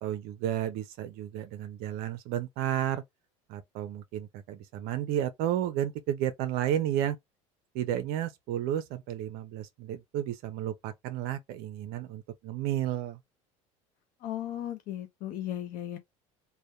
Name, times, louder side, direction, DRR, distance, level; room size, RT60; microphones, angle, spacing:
voice 1, 0.0-3.0 3.5-7.2 7.7-13.2, right 11 dB, 60° right, 0.5 m, -32 dB
voice 2, 14.2-16.0, left 12 dB, 55° left, 0.5 m, -36 dB
2.7 x 2.1 x 2.2 m
hypercardioid pair, 85°, 18 cm